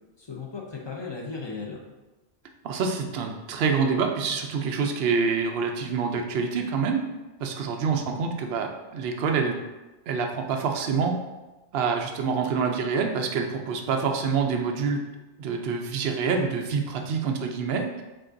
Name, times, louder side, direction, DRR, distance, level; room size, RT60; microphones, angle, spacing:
voice 1, 0.2-1.8 7.9-8.2, left 4 dB, 35° left, -2 dB, 0.4 m, -36 dB
voice 2, 2.6-7.0 7.4-9.6 10.1-11.2 11.7-15.0 15.4-18.0, right 5 dB, 60° right, 3 dB, 0.7 m, -26 dB
7.4 x 2.5 x 2.5 m, 1.1 s
omnidirectional pair, 1.3 m